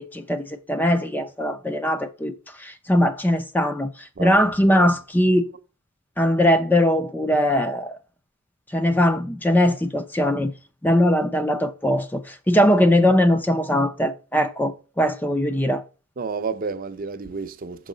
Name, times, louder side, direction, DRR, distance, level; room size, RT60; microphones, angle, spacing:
voice 1, 0.0-2.3 2.6-5.5 6.2-8.0 8.7-10.5 10.8-15.8, equal, 10° left, 0.5 m, -20 dB
voice 2, 4.2-4.9 16.2-17.9, right 4 dB, 45° right, 0.5 m, -31 dB
6.3 x 4.6 x 3.8 m
head